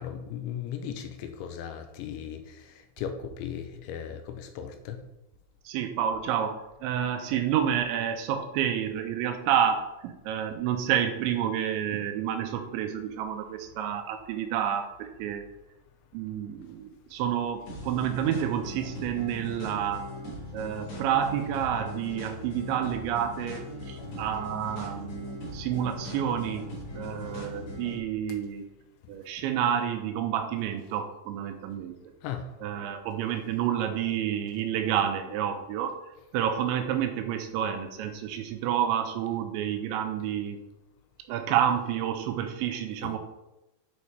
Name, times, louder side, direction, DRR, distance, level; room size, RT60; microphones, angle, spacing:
voice 1, 0.0-5.0 32.2-32.5 43.0-43.1, left 8 dB, 80° left, 7 dB, 2.8 m, -37 dB
voice 2, 5.7-15.4 16.1-20.1 20.5-26.6 27.0-28.6 29.1-31.9 32.6-35.9 36.3-40.6 41.3-43.2, right 9 dB, 85° right, 6 dB, 2.9 m, -29 dB
sound 1, 17.7-28.0, left 1 dB, 60° left, 3.6 m, -39 dB
8.4 x 4.1 x 4.7 m, 0.94 s
omnidirectional pair, 5.4 m